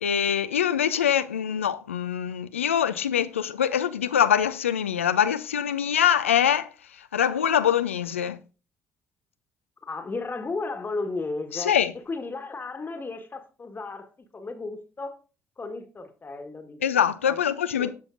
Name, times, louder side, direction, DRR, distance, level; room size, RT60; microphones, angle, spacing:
voice 1, 0.0-6.7 7.0-8.4 11.5-11.9 16.8-17.9, left 9 dB, 90° left, 0.4 m, -24 dB
voice 2, 9.9-11.8 12.1-15.1 15.6-16.8 17.2-17.4 17.8-17.9, left 3 dB, 30° left, 1.3 m, -34 dB
15.5 x 5.7 x 2.5 m
hypercardioid pair, 50°, 7 cm